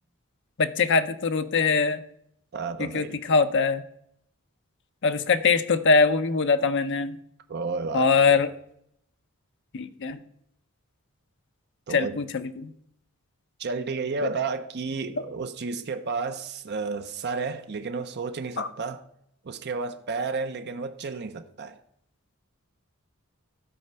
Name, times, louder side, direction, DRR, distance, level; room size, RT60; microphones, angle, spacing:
voice 1, 0.6-2.0 2.8-3.8 5.0-7.2 7.9-8.5 9.7-10.2 11.9-12.7 14.2-14.3 18.6-18.7, left 4 dB, 55° left, 0.7 m, -22 dB
voice 2, 2.5-3.2 7.5-8.4 11.9-12.2 13.6-19.0 19.4-21.8, right 4 dB, 50° right, 0.6 m, -32 dB
12.5 x 4.3 x 6.7 m
head